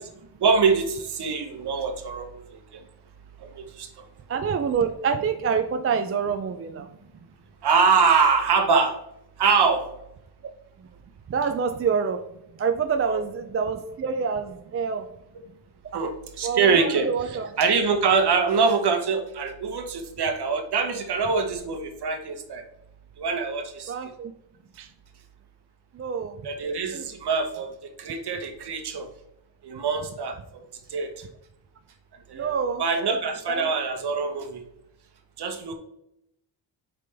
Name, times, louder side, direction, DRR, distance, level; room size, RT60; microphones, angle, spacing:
voice 1, 0.4-2.8 3.4-4.0 7.6-8.9 9.4-9.9 13.1-13.2 15.9-16.1 16.4-17.1 17.6-22.6 23.2-23.9 26.4-29.1 29.6-30.4 30.9-31.3 32.3-32.5 32.8-34.6 35.4-35.7, right 5 dB, 60° right, 6 dB, 1.2 m, -24 dB
voice 2, 4.3-6.9 10.8-10.9 11.3-12.2 12.6-15.1 15.9-16.0 16.4-17.5 23.9-24.3 24.8-24.9 25.9-26.5 26.9-27.1 29.7-29.8 32.3-33.2 33.5-33.7, right 6 dB, 30° right, 7 dB, 0.4 m, -27 dB
8.2 x 5.2 x 3.4 m, 0.81 s
wide cardioid pair, 140°, 45 cm